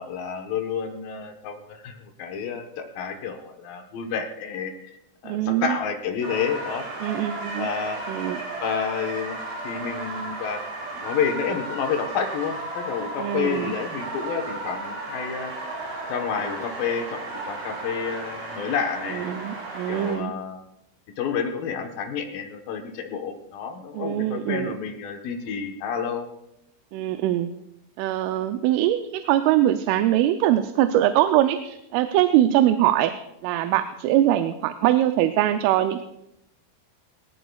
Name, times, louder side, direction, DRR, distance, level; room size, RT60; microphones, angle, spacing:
voice 1, 0.0-4.9 5.2-6.8 7.6-8.0 8.6-9.4 9.6-10.6 10.9-15.5 16.1-19.3 19.9-20.6 21.2-26.3, left 6 dB, 70° left, 4 dB, 2.2 m, -29 dB
voice 2, 5.2-5.8 7.0-7.7 8.1-8.4 13.2-13.7 19.1-20.4 23.9-24.7 26.9-27.5 28.0-36.0, right 13 dB, 90° right, 8 dB, 3.2 m, -22 dB
sound 1, 6.2-20.1, right 2 dB, 65° right, 7.6 m, -34 dB
20.0 x 18.5 x 2.3 m, 0.83 s
omnidirectional pair, 5.6 m